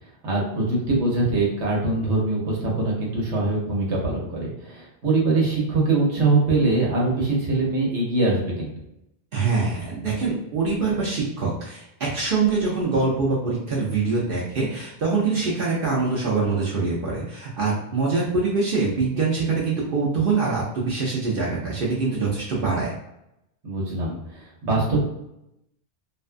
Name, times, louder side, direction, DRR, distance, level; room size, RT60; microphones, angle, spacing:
voice 1, 0.2-8.7 23.6-25.1, right 2 dB, 80° right, -3 dB, 1.2 m, -23 dB
voice 2, 9.3-22.9, right 4 dB, 60° right, -5 dB, 0.7 m, -24 dB
2.5 x 2.2 x 2.4 m, 0.84 s
omnidirectional pair, 1.2 m